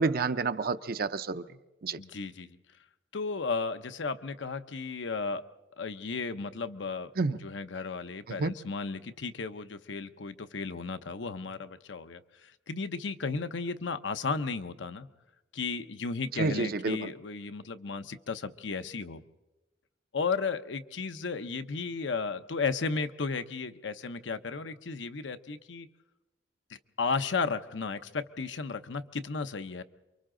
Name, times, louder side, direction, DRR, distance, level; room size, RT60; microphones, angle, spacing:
voice 1, 0.0-1.4 1.8-2.0 7.2-7.4 8.4-8.5 16.4-17.1, right 4 dB, 55° right, 0.6 m, -29 dB
voice 2, 2.0-2.6 3.1-5.4 5.8-7.1 7.4-15.1 15.5-19.2 20.1-25.9 26.7-29.8, left 4 dB, 80° left, 0.8 m, -34 dB
28.5 x 24.0 x 3.8 m
head